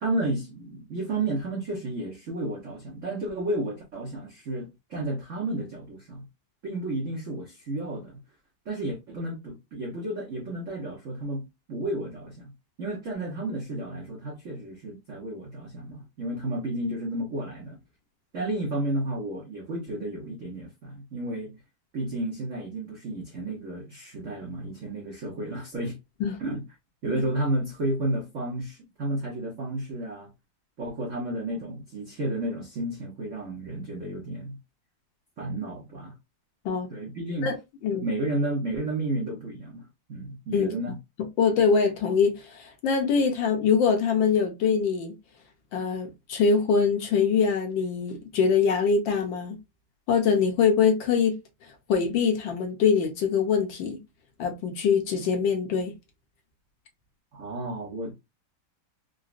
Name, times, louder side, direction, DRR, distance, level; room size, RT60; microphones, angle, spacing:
voice 1, 0.0-6.3 6.6-8.2 8.7-12.5 12.8-17.8 18.3-21.6 21.9-26.0 26.4-26.6 27.0-30.3 30.8-34.6 35.4-36.1 36.9-37.5 38.0-41.0 57.3-58.1, right 1 dB, 65° right, 0.7 m, -32 dB
voice 2, 41.4-45.1 45.7-49.6 50.1-51.4 51.9-54.0 54.4-55.9, left 6 dB, 70° left, 1.3 m, -23 dB
3.9 x 2.1 x 2.4 m
omnidirectional pair, 2.4 m